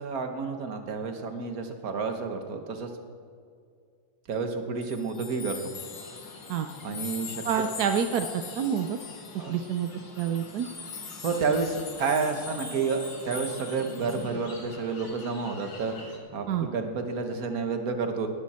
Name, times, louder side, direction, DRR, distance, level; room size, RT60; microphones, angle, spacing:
voice 1, 0.0-2.9 4.3-5.6 6.8-7.6 9.4-9.6 11.2-18.3, right 4 dB, 50° right, 6 dB, 1.5 m, -30 dB
sound 1, 4.8-14.3, left 5 dB, 85° left, 2.6 m, -42 dB
sound 2, 5.7-16.2, left 3 dB, 60° left, 2.6 m, -47 dB
voice 2, 7.4-9.0 9.5-9.9 10.2-10.7 16.5-16.7, right 8 dB, 70° right, 7 dB, 0.9 m, -27 dB
19.0 x 12.5 x 4.3 m, 2.3 s
omnidirectional pair, 2.3 m